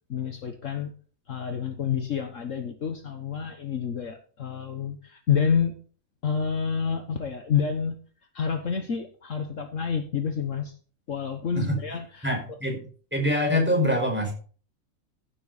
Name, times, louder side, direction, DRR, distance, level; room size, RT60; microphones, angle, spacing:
voice 1, 0.1-0.9 1.3-5.7 6.2-8.0 8.3-10.7 11.1-12.6, left 7 dB, 60° left, 6 dB, 1.6 m, -28 dB
voice 2, 12.2-12.8 13.1-14.3, left 1 dB, 5° right, 0 dB, 5.1 m, -24 dB
15.0 x 7.9 x 4.1 m, 0.41 s
omnidirectional pair, 1.5 m